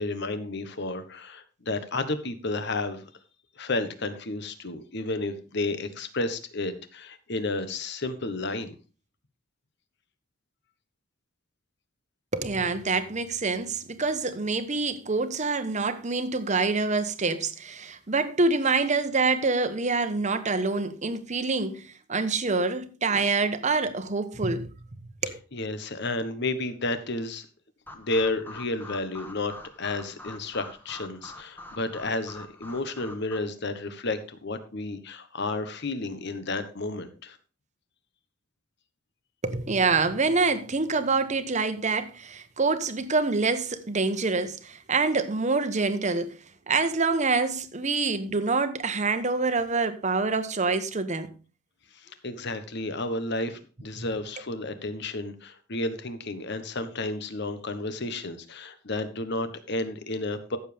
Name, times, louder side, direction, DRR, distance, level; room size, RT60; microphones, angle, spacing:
voice 1, 0.0-3.1 3.6-8.8 25.5-27.5 27.9-37.4 51.9-60.6, left 2 dB, 60° left, 1.3 m, -32 dB
voice 2, 12.3-24.7 25.0-25.4 39.4-46.4 46.7-51.3 54.0-54.1, right 3 dB, 35° right, 1.0 m, -26 dB
sound 1, 27.9-33.4, left 2 dB, 10° left, 1.3 m, -44 dB
14.5 x 7.3 x 3.5 m
head